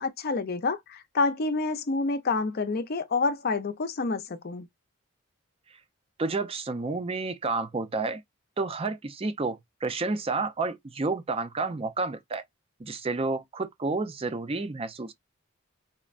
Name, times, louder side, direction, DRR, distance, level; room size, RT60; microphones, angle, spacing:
voice 1, 0.0-4.7, left 3 dB, 45° left, 0.5 m, -28 dB
voice 2, 6.2-8.2 8.6-12.4 12.8-15.1, right 3 dB, 25° right, 0.4 m, -30 dB
4.2 x 2.1 x 2.4 m
head